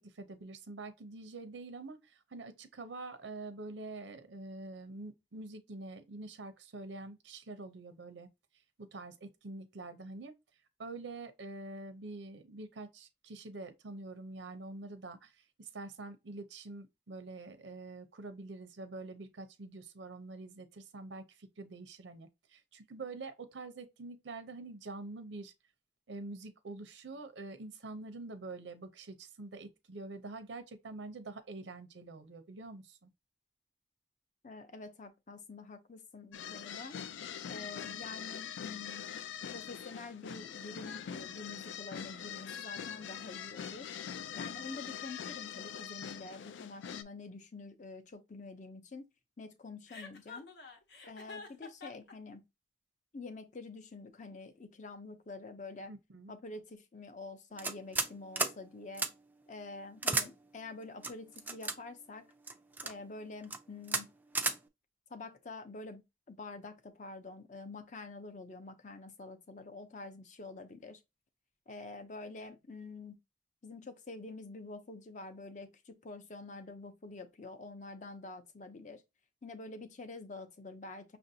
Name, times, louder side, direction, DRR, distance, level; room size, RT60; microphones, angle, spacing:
voice 1, 0.0-8.3 8.8-10.3 10.8-25.5 26.1-33.1 55.9-56.3, right 3 dB, 90° right, 0.6 m, -46 dB
voice 2, 34.4-37.0 37.5-39.0 39.5-43.9 44.4-49.0 49.4-50.5 51.1-52.4 53.1-55.9 56.3-59.1 59.5-62.3 62.8-64.1 65.1-66.0 66.3-71.0 71.7-73.2 73.6-79.0 79.4-81.2, left 3 dB, 40° left, 0.6 m, -47 dB
sound 1, 36.3-47.0, left 8 dB, 90° left, 0.3 m, -43 dB
Chuckle chortle, 49.9-52.1, left 4 dB, 70° left, 0.9 m, -48 dB
sound 2, 57.6-58.1 58.4-58.5 59.0-59.1 60.0-60.3 61.0-61.7 62.5-62.9 63.4-63.6 63.9-64.0 64.3-64.6, right 3 dB, 10° right, 0.3 m, -32 dB
5.8 x 2.5 x 2.7 m
head